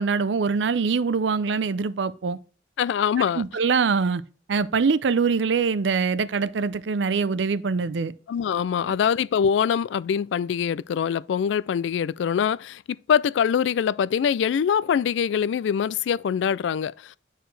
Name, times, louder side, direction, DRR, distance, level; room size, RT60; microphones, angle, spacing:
voice 1, 0.0-2.4 3.3-4.2 4.5-8.1, right 5 dB, 80° right, 0.5 m, -23 dB
voice 2, 2.8-3.4 8.3-12.8 13.1-17.2, left 7 dB, 85° left, 0.3 m, -23 dB
10.0 x 4.5 x 3.2 m
head